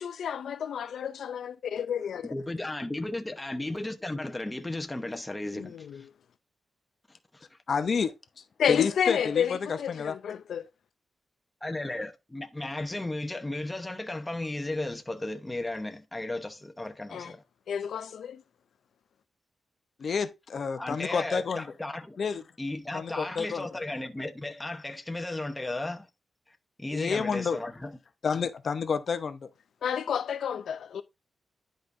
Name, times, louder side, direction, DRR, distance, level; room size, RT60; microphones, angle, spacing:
voice 1, 0.0-2.3 5.5-6.0 8.6-10.7 17.1-17.3 17.7-18.4 29.8-31.0, left 8 dB, 80° left, 0.4 m, -30 dB
voice 2, 2.2-6.1 7.1-7.4 11.6-17.4 20.8-22.2 22.6-26.1 26.5-27.9, left 2 dB, 10° left, 0.9 m, -35 dB
voice 3, 7.7-10.1 20.0-21.7 22.2-22.4 22.9-23.7 26.9-27.6 28.2-29.5, left 5 dB, 45° left, 0.7 m, -30 dB
10.5 x 5.2 x 2.6 m
wide cardioid pair, 170°, 0 cm